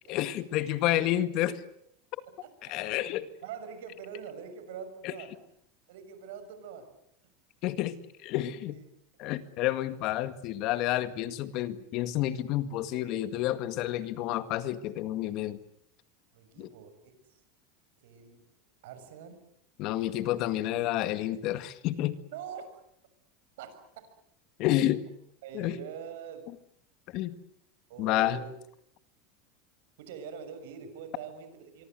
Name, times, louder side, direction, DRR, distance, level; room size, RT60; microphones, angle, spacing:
voice 1, 0.1-1.6 2.7-3.3 5.0-5.1 7.6-8.8 9.2-15.6 16.6-16.7 19.8-22.2 24.6-25.0 25.5-25.8 27.1-27.3 28.0-28.4, left 14 dB, 50° left, 12 dB, 2.0 m, -29 dB
voice 2, 2.3-2.9 3.4-5.3 5.9-6.9 8.7-8.8 9.6-9.8 16.3-16.9 17.3-17.4 18.0-18.4 18.8-19.4 22.3-22.7 23.6-23.7 25.4-26.5 27.9-28.5 30.0-31.8, right 7 dB, 80° right, 9 dB, 6.7 m, -44 dB
25.0 x 24.0 x 7.9 m, 0.71 s
supercardioid pair, 140°, 0 cm